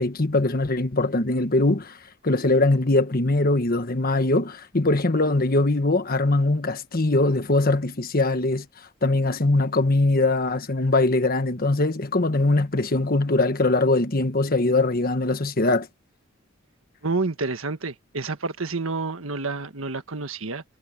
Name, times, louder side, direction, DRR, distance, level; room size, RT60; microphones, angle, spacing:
voice 1, 0.0-2.0 2.2-8.6 9.0-15.9, left 2 dB, 45° left, 1.4 m, -22 dB
voice 2, 17.0-20.6, right 3 dB, 80° right, 1.6 m, -29 dB
head